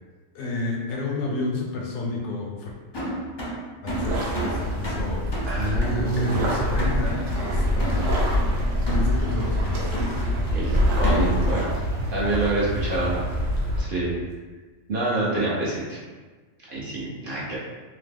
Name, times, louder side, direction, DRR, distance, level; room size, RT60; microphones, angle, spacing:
voice 1, 0.3-2.7 3.8-5.3 5.9-8.4 8.9-10.0, left 3 dB, 70° left, -2 dB, 0.8 m, -31 dB
sound 1, 2.9-11.5, equal, 35° left, 0.4 m, -34 dB
sound 2, 3.9-13.8, equal, 80° right, 1.0 m, -25 dB
voice 2, 5.5-6.5 10.5-11.7 12.1-13.2 13.8-14.2 14.9-16.0 16.7-17.6, right 2 dB, 55° right, -7 dB, 0.7 m, -26 dB
2.8 x 2.1 x 3.4 m, 1.3 s
omnidirectional pair, 1.3 m